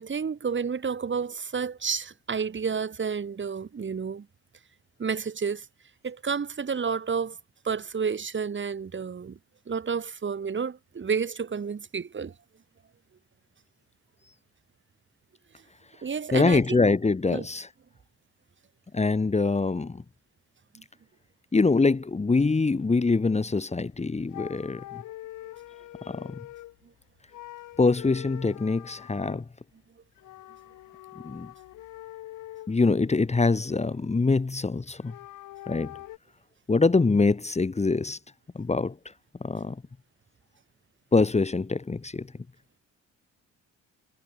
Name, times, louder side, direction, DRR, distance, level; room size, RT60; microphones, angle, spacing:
voice 1, 0.0-4.3 5.0-5.7 6.0-7.4 7.6-9.4 9.7-12.3 16.0-16.8 17.3-17.5 20.7-20.8, right 6 dB, 40° right, 4.3 m, -30 dB
voice 2, 16.3-17.7 18.9-20.0 21.5-25.0 26.1-26.4 27.8-29.4 31.2-31.5 32.7-35.1 35.7-35.9 36.7-38.2 38.6-38.9 39.4-39.8 41.1-42.3, left 3 dB, 20° left, 2.2 m, -24 dB
sound 1, 23.9-24.0 24.3-26.8 27.3-29.4 30.2-32.7 33.2-34.2 34.9-36.2, left 16 dB, 90° left, 2.7 m, -44 dB
cardioid pair, 90°, 30 cm